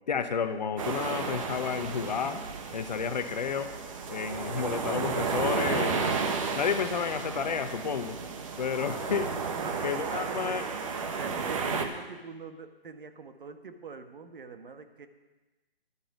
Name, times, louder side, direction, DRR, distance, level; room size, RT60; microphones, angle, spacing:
voice 1, 0.1-2.4 2.7-3.7 4.1-6.2 6.6-8.2 8.6-9.3 9.8-10.6, left 6 dB, 40° left, 9 dB, 0.8 m, -31 dB
sound 1, 0.8-11.8, right 5 dB, 30° right, 1.1 m, -33 dB
voice 2, 9.6-15.1, right 5 dB, 55° right, 8 dB, 1.4 m, -44 dB
11.5 x 8.7 x 8.1 m, 1.1 s
figure-of-eight pair, 155°, 32 cm